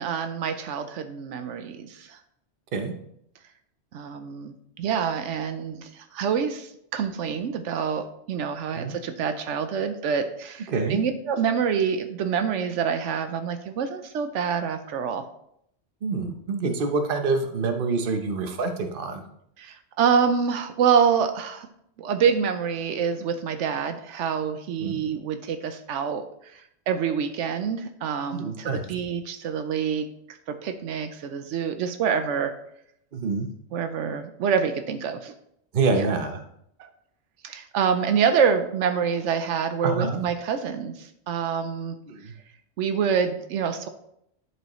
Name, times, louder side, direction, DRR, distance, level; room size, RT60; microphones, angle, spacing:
voice 1, 0.0-2.2 3.9-15.2 19.6-21.7 22.0-26.2 26.5-32.5 33.7-35.3 35.9-36.1 36.8-36.9 37.4-41.9 42.8-43.9, right 7 dB, 85° right, 8 dB, 0.9 m, -26 dB
voice 2, 16.0-19.2 24.8-25.0 28.3-28.8 33.1-33.5 35.7-36.4 39.8-40.2 42.1-42.3, right 4 dB, 50° right, 6 dB, 1.0 m, -26 dB
11.0 x 4.6 x 3.0 m, 0.74 s
omnidirectional pair, 1.2 m